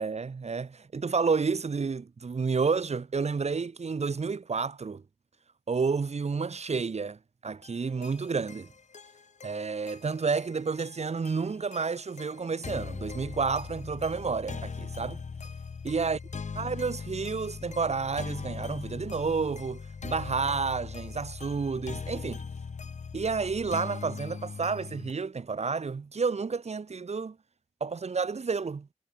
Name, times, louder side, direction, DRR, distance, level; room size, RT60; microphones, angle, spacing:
voice 1, 0.0-5.0 5.7-8.7 9.4-15.2 15.8-16.2 16.6-22.4 23.1-27.4 27.8-28.9, right 5 dB, 65° right, 2.2 m, -30 dB
sound 1, 7.6-25.1, left 5 dB, 85° left, 7.2 m, -40 dB
wide cardioid pair, 75°, 12 cm